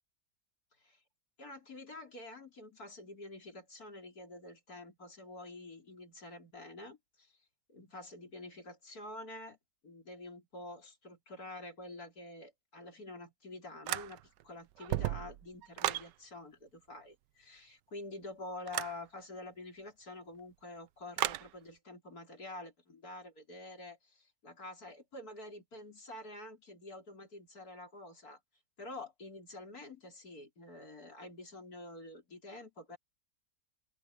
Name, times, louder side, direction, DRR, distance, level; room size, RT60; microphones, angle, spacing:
voice 1, 1.4-7.3 7.7-9.6 9.8-28.4 28.8-33.0, left 2 dB, 55° left, 4.7 m, -48 dB
sound 1, 13.9-14.4 14.8-16.1 18.7-19.0 21.2-21.5, right 14 dB, 80° right, 1.3 m, -34 dB
open air
omnidirectional pair, 1.9 m